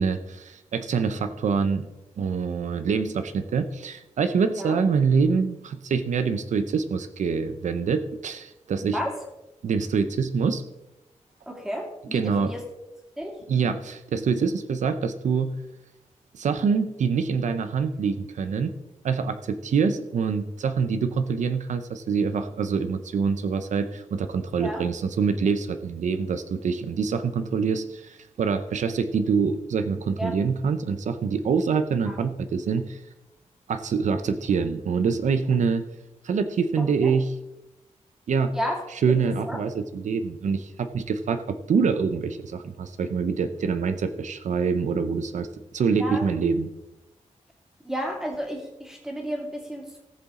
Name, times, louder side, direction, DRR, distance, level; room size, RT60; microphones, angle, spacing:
voice 1, 0.0-1.9 2.2-9.0 9.6-10.6 12.1-12.5 13.5-15.5 16.3-18.7 19.0-33.0 33.7-35.9 36.2-37.3 38.3-38.5 38.9-45.5 45.7-46.7, right 5 dB, 80° right, 9 dB, 0.8 m, -25 dB
voice 2, 8.8-9.1 11.5-12.6 13.2-13.4 24.6-24.8 30.2-30.4 32.1-32.2 36.8-37.1 38.5-38.8 39.1-39.2 39.4-39.6 46.0-46.3 47.8-50.0, equal, 5° right, -1 dB, 2.6 m, -32 dB
18.5 x 7.1 x 3.8 m, 0.95 s
wide cardioid pair, 160°, 12 cm